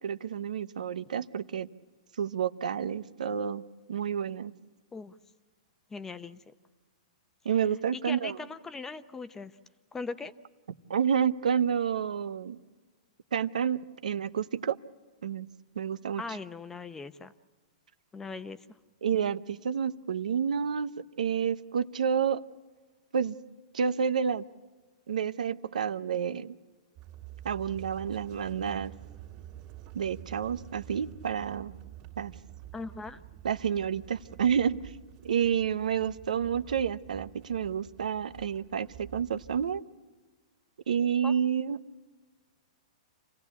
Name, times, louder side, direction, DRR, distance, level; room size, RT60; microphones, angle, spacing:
voice 1, 0.0-1.7 2.2-3.6 3.9-4.5 7.4-8.4 10.9-12.6 13.3-14.8 15.2-15.5 15.8-16.2 19.0-22.4 23.1-23.3 23.7-24.4 25.1-26.5 27.4-28.9 29.9-31.7 32.2-32.3 33.4-35.0 35.2-39.8 40.9-41.8, right 7 dB, 90° right, 13 dB, 0.8 m, -29 dB
voice 2, 5.9-6.4 7.9-9.5 9.9-10.3 16.2-17.3 18.1-18.8 32.7-33.2 41.2-41.3, left 4 dB, 10° left, 12 dB, 0.7 m, -39 dB
sound 1, 27.0-39.8, right 12 dB, 35° right, 2.3 m, -49 dB
27.5 x 16.5 x 8.3 m, 1.4 s
hypercardioid pair, 150°, 4 cm